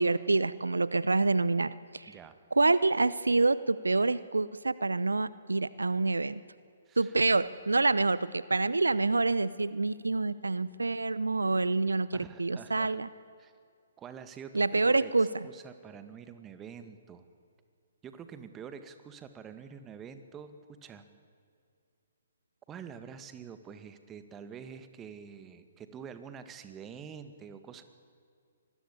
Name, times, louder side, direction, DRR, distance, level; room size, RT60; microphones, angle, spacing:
voice 1, 0.0-2.1 2.5-6.4 7.0-13.1 14.5-15.3, right 3 dB, 80° right, 18 dB, 0.7 m, -27 dB
voice 2, 2.1-2.4 6.9-7.2 12.1-13.0 13.4-13.5 14.0-17.3 18.0-21.0 22.7-27.8, right 7 dB, 15° right, 10 dB, 1.8 m, -46 dB
25.5 x 20.5 x 8.5 m, 2.3 s
figure-of-eight pair, 130°, 0 cm